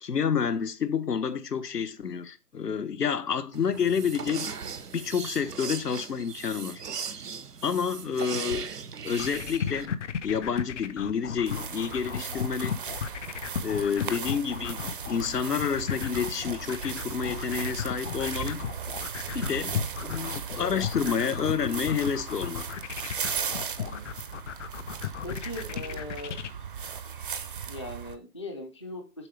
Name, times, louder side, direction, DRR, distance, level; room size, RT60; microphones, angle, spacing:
voice 1, 0.0-4.5 4.9-6.8 7.6-8.7 9.0-9.9 10.2-12.8 13.6-18.7 19.3-22.7, left 7 dB, 80° left, 1.0 m, -29 dB
sound 1, 3.5-9.9, right 6 dB, 80° right, 1.0 m, -38 dB
sound 2, 9.1-26.5, left 8 dB, 50° left, 0.7 m, -34 dB
sound 3, 11.5-28.2, right 7 dB, 35° right, 0.5 m, -37 dB
voice 2, 13.9-14.2 23.8-24.1 25.2-26.4 27.7-29.3, left 1 dB, 20° left, 0.4 m, -40 dB
7.5 x 4.9 x 3.3 m
figure-of-eight pair, 140°, 47 cm